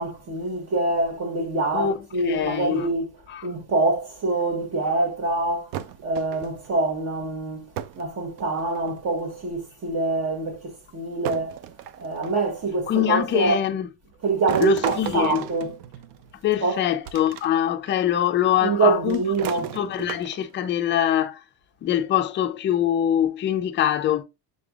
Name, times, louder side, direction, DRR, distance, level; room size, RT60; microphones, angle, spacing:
voice 1, 0.0-3.1 3.4-5.7 6.0-7.7 8.0-11.6 12.0-13.6 14.2-15.8 16.6-16.9 18.6-19.7, right 3 dB, 35° right, 1.2 m, -25 dB
voice 2, 1.7-2.9 3.3-3.5 12.9-13.9 14.6-15.4 16.4-19.2 19.7-21.4 21.8-24.2, left 10 dB, 30° left, 0.4 m, -23 dB
sound 1, 5.7-6.7 7.8-8.1 8.4-9.0 10.0-10.1 11.2-12.6 14.5-16.3 17.0-17.5 17.9-18.0 19.1-20.6, right 10 dB, 65° right, 0.6 m, -34 dB
6.8 x 3.3 x 2.3 m
cardioid pair, 150°, 45 cm